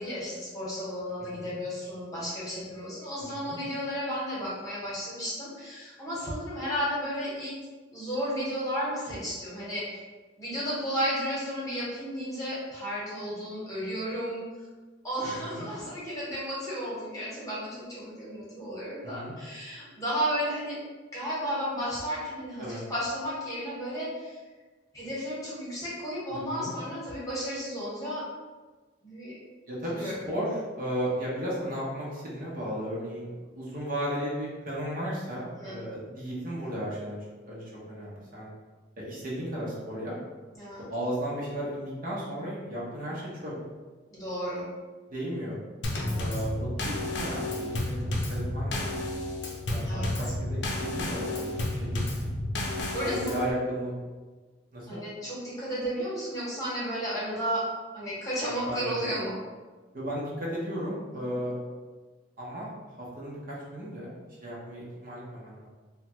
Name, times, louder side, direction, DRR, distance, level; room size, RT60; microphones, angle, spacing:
voice 1, 0.0-7.5 7.9-10.0 10.4-14.4 15.0-20.8 21.1-24.4 24.9-28.3 29.0-29.4 30.0-30.2 35.6-35.9 40.5-40.9 44.1-44.7 45.9-46.2 49.8-50.1 52.9-53.2 54.9-57.7 57.9-59.3, equal, 20° left, -8 dB, 1.0 m, -33 dB
voice 2, 1.2-1.6 3.3-3.6 15.2-15.7 19.0-19.3 22.6-22.8 26.3-26.7 29.7-38.5 39.0-40.1 40.9-43.5 45.1-45.6 46.1-49.0 49.7-52.2 53.0-53.9 54.7-55.0 58.7-59.1 59.9-61.5 62.4-62.7 63.0-64.1 64.4-65.7, equal, 50° right, -6 dB, 0.8 m, -35 dB
Drum kit / Snare drum / Bass drum, 45.8-53.5, left 1 dB, 70° left, 0.5 m, -31 dB
3.1 x 2.2 x 3.0 m, 1.3 s
head